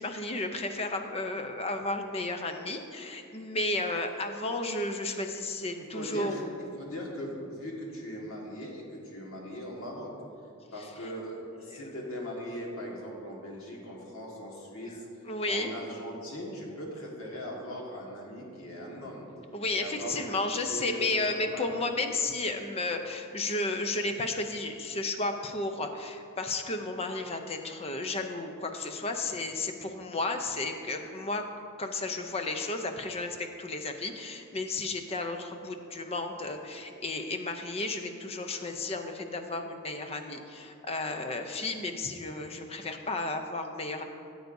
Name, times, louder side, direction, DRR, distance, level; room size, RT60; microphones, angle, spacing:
voice 1, 0.0-6.3 11.7-11.9 14.8-14.9 15.3-15.7 19.5-31.4 31.8-44.0, left 2 dB, 30° left, 6 dB, 0.5 m, -33 dB
voice 2, 5.8-6.4 6.8-10.1 10.7-15.1 15.5-19.3 19.7-21.7, equal, 70° left, -2 dB, 1.7 m, -40 dB
13.5 x 8.0 x 2.7 m, 2.6 s
head